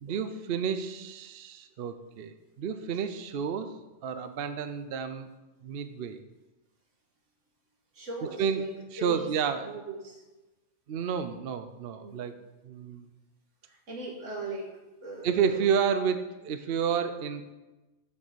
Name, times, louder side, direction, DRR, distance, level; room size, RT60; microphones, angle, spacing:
voice 1, 0.0-5.3 5.6-6.2 8.4-8.6 9.0-9.7 10.9-12.3 12.6-13.1 15.2-17.5, right 7 dB, 60° right, 9 dB, 0.8 m, -30 dB
voice 2, 7.9-10.2 12.0-12.2 13.6-14.7 15.0-15.7, right 2 dB, 85° right, 0 dB, 2.2 m, -39 dB
7.7 x 6.9 x 6.8 m, 1.1 s
omnidirectional pair, 1.2 m